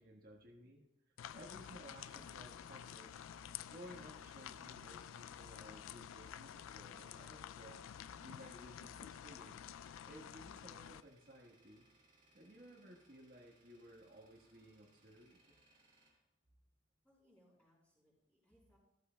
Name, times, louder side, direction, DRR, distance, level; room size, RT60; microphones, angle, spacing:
voice 1, 0.0-3.1 3.7-7.8 8.2-9.7 10.0-11.9 12.3-15.4, equal, 45° right, -3 dB, 1.4 m, -57 dB
sound 1, 1.2-11.0, left 9 dB, 75° left, 0.3 m, -51 dB
Tools, 1.7-17.1, right 1 dB, 25° right, 2.7 m, -72 dB
voice 2, 17.0-18.8, equal, 5° left, -4 dB, 5.1 m, -71 dB
14.5 x 14.0 x 2.3 m, 0.88 s
head